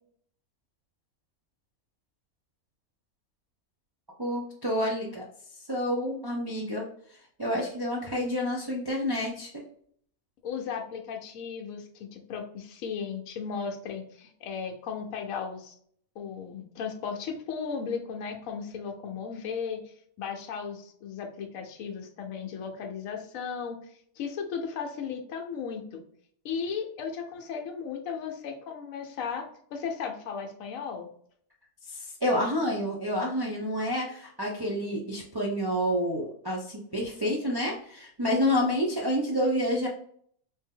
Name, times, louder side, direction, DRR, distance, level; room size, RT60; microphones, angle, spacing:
voice 1, 4.2-5.2 5.7-6.8 7.4-9.6 31.9-39.9, equal, 35° right, -3 dB, 0.3 m, -29 dB
voice 2, 10.4-15.7 16.2-26.0 26.4-31.1, left 6 dB, 75° left, 3 dB, 1.1 m, -36 dB
3.5 x 2.7 x 3.6 m, 0.63 s
omnidirectional pair, 1.5 m